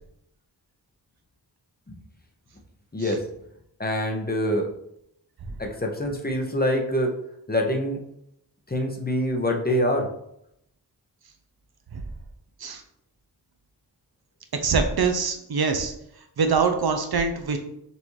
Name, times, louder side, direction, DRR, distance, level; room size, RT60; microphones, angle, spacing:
voice 1, 2.9-3.3 3.8-4.7 5.6-7.1 7.5-8.0 8.7-10.1, equal, 25° left, 1 dB, 0.7 m, -25 dB
voice 2, 14.6-15.9 16.4-17.6, right 5 dB, 65° right, 6 dB, 0.6 m, -23 dB
5.4 x 2.6 x 3.1 m, 0.76 s
wide cardioid pair, 60°, 40 cm